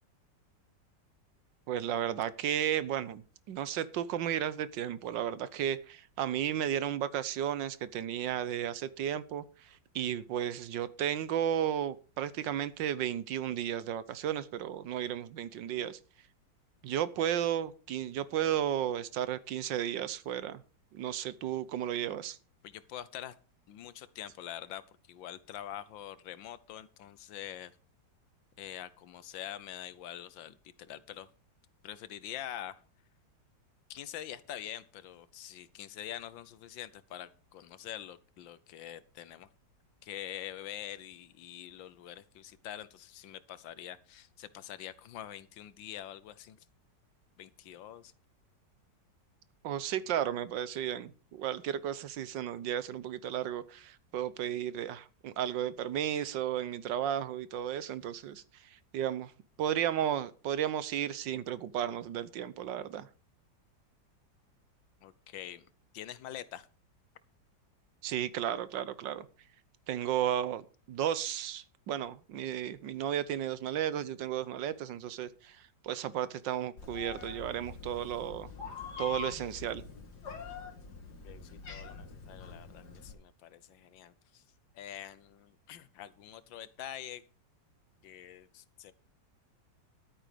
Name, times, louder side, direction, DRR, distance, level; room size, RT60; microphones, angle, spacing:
voice 1, 1.7-16.0 16.8-20.6 20.9-22.4 49.6-59.3 59.6-63.1 68.0-69.3 69.9-78.5 79.0-79.8, right 10 dB, 80° right, 1.5 m, -34 dB
voice 2, 22.6-23.3 23.7-24.8 25.1-27.7 28.6-31.3 31.8-32.8 33.9-39.5 40.0-46.6 47.4-48.1 65.0-65.7 65.9-66.7 81.2-84.4 84.7-87.2 88.0-88.9, left 11 dB, 85° left, 1.6 m, -45 dB
Meow, 76.8-83.1, left 6 dB, 60° left, 2.6 m, -44 dB
12.5 x 9.1 x 5.1 m
omnidirectional pair, 2.0 m